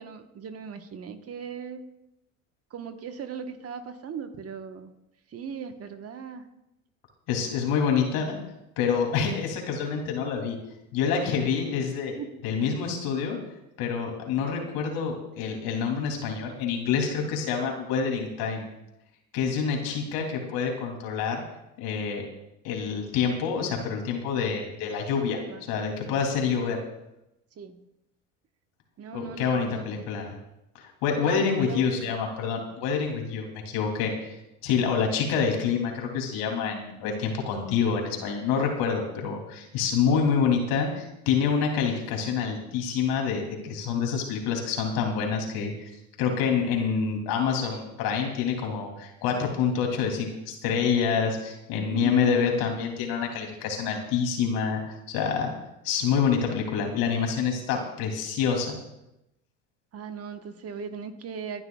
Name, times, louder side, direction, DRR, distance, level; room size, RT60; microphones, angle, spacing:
voice 1, 0.0-1.8 2.7-4.9 5.3-6.4 12.2-12.3 25.4-25.6 26.1-26.2 27.6-27.8 29.0-30.0 31.2-32.2 51.8-52.7 59.9-61.6, right 6 dB, 40° right, 7 dB, 1.2 m, -38 dB
voice 2, 7.3-8.4 8.8-10.6 10.9-13.4 13.8-18.7 19.3-21.4 21.8-22.3 22.6-25.4 25.7-26.8 29.1-30.3 30.7-34.4 34.6-45.9 46.2-55.5 55.8-58.8, left 6 dB, 70° left, 2 dB, 2.9 m, -27 dB
28.0 x 11.0 x 2.3 m, 0.87 s
supercardioid pair, 95°, 38 cm